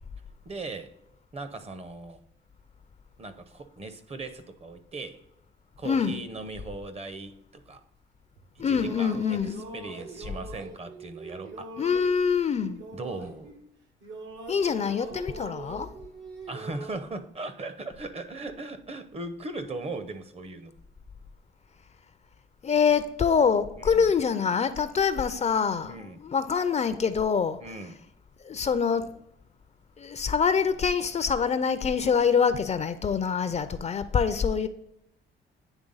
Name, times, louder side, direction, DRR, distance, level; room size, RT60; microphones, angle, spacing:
voice 1, 0.5-0.9 1.3-2.2 3.2-5.2 5.8-7.8 8.7-11.7 12.9-13.5 16.5-20.7 23.8-24.1 25.8-26.2 27.6-28.0, right 2 dB, 30° right, 0.7 m, -38 dB
voice 2, 5.8-6.2 8.6-9.7 11.8-12.8 14.5-15.9 22.6-27.6 28.4-29.1 30.0-34.7, left 6 dB, 35° left, 0.4 m, -25 dB
sound 1, 8.4-13.7 14.0-17.0, right 4 dB, 75° right, 1.2 m, -42 dB
9.0 x 3.4 x 3.9 m
cardioid pair, 90°, 20 cm